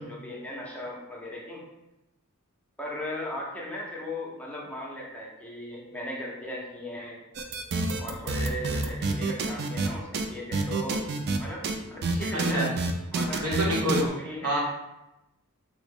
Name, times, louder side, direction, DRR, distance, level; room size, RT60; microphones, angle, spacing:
voice 1, 0.0-1.6 2.8-7.2 8.0-11.0 11.4-12.7 13.1-13.7 14.0-14.6, left 1 dB, 5° left, -4 dB, 0.6 m, -37 dB
sound 1, 7.3-9.9 10.1-10.3 10.5-11.4 11.6-11.7 12.0-14.0, right 3 dB, 50° right, 0.3 m, -28 dB
voice 2, 12.3-12.7 13.4-14.0 14.4-14.6, equal, 80° right, -2 dB, 0.8 m, -27 dB
3.6 x 2.0 x 3.5 m, 0.95 s
head